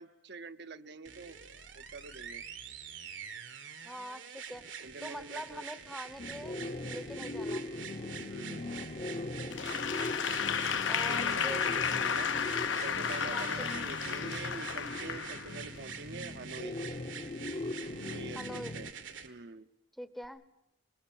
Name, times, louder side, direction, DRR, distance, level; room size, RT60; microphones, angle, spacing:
voice 1, 0.0-1.4 1.7-2.4 4.8-5.7 8.3-8.7 10.8-12.3 12.8-16.8 18.0-18.9 19.2-19.7, right 3 dB, 60° right, 9 dB, 0.8 m, -45 dB
sound 1, 1.1-19.3 20.2-20.3, right 7 dB, 85° right, 1.9 m, -46 dB
voice 2, 3.8-6.6 6.9-7.7 10.9-11.7 13.3-14.0 18.3-18.8 20.0-20.4, equal, ahead, 14 dB, 0.8 m, -44 dB
sound 2, 6.2-18.9, left 2 dB, 35° left, 0.8 m, -40 dB
Applause / Crowd, 9.5-15.8, left 7 dB, 80° left, 1.0 m, -33 dB
25.0 x 21.0 x 7.2 m, 0.89 s
head